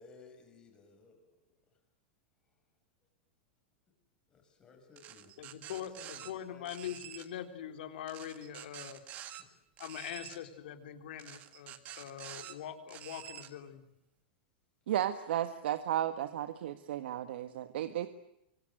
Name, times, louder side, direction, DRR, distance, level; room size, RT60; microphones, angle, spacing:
voice 1, 0.0-1.4 4.3-6.9 8.6-8.7 9.4-9.5 13.7-13.9 17.9-18.0, left 3 dB, 15° left, 4 dB, 5.9 m, -58 dB
sound 1, 5.0-6.3 6.7-7.3 8.1-9.4 9.8-10.4 11.2-12.5 12.9-13.5, right 11 dB, 25° right, 1.8 m, -48 dB
voice 2, 5.4-9.0 9.8-13.8, left 10 dB, 65° left, 7 dB, 3.9 m, -43 dB
voice 3, 14.9-18.1, right 11 dB, 70° right, 10 dB, 1.6 m, -34 dB
26.5 x 25.0 x 7.9 m, 0.82 s
supercardioid pair, 170°, 6 cm